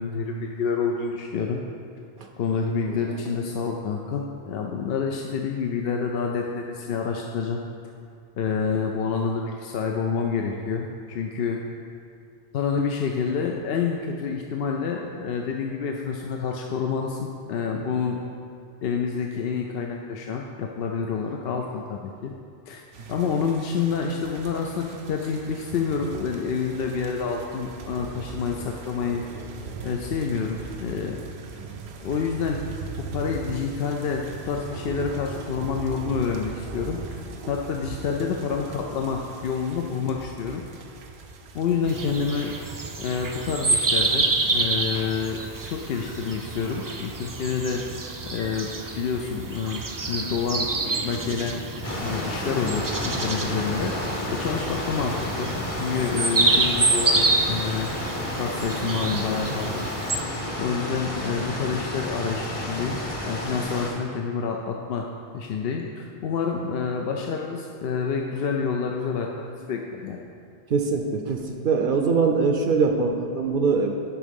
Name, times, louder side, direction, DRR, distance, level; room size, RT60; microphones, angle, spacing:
voice 1, 0.0-1.6 2.4-7.6 8.4-11.6 12.5-18.2 18.8-22.3 22.7-22.8 23.1-29.2 29.8-31.2 32.0-32.6 33.0-37.2 37.5-40.6 41.5-42.5 43.0-45.4 45.7-47.8 48.3-50.7 51.0-53.9 54.3-57.9 58.4-59.9 60.6-63.0 63.3-65.1 65.3-70.2, left 6 dB, 75° left, 1 dB, 0.8 m, -28 dB
sound 1, 22.9-42.1, right 4 dB, 85° right, 0.9 m, -39 dB
sound 2, 41.9-60.2, right 3 dB, 35° right, 0.3 m, -28 dB
sound 3, 51.8-63.9, left 1 dB, 35° left, 0.9 m, -31 dB
voice 2, 70.7-73.9, right 4 dB, 65° right, 3 dB, 0.7 m, -23 dB
11.0 x 3.7 x 5.3 m, 2.4 s
omnidirectional pair, 1.0 m